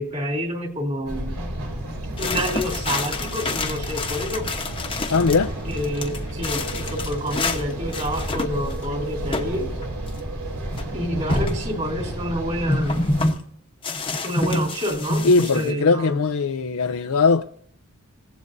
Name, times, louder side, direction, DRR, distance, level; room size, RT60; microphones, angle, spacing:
voice 1, 0.0-1.4 2.2-4.5 5.7-9.7 10.9-13.0 14.2-16.2, equal, 30° right, 3.6 m, -28 dB
sound 1, 1.1-13.3, right 1 dB, 85° right, 3.4 m, -32 dB
sound 2, 2.2-5.4 5.7-7.6 7.9-8.8 9.3-9.6 9.8-9.9 10.8-10.9 11.3-11.7 12.7-13.4 13.8-15.7, left 2 dB, 25° left, 1.1 m, -26 dB
voice 2, 5.1-5.5 15.2-17.4, left 4 dB, 75° left, 0.6 m, -19 dB
27.5 x 16.0 x 2.7 m
head